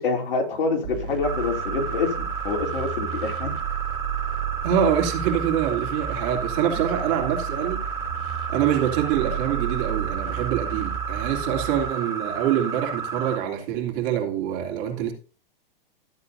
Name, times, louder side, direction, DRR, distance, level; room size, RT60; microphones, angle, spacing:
voice 1, 0.0-3.5, left 4 dB, 75° left, 2 dB, 3.0 m, -26 dB
sound 1, 0.8-11.9, right 8 dB, 65° right, 2.6 m, -33 dB
sound 2, 1.2-13.4, right 6 dB, 15° right, 3.1 m, -32 dB
voice 2, 4.6-7.8 8.5-15.1, right 9 dB, 45° right, 2 dB, 2.9 m, -25 dB
13.5 x 8.4 x 2.7 m, 0.39 s
hypercardioid pair, 130°, 29 cm